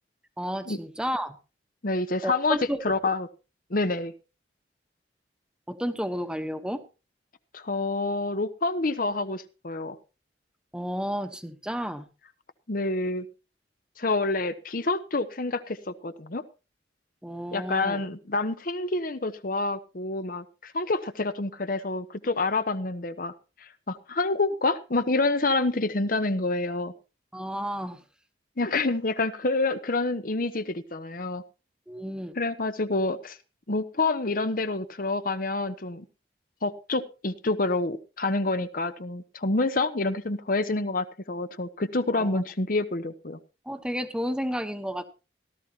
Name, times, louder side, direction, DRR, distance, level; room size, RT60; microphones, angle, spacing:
voice 1, 0.4-1.4 2.2-2.8 5.7-6.8 10.7-12.1 17.2-18.0 27.3-28.0 31.9-32.3 42.2-42.4 43.6-45.0, equal, 5° right, 8 dB, 1.1 m, -31 dB
voice 2, 1.8-2.6 2.8-3.3 3.7-4.1 7.5-10.0 12.7-13.3 14.0-16.4 17.5-23.3 23.6-26.9 28.6-31.4 32.3-33.4 33.7-36.0 36.6-43.4, left 2 dB, 50° left, 11 dB, 0.9 m, -27 dB
17.5 x 13.0 x 2.9 m, 0.31 s
head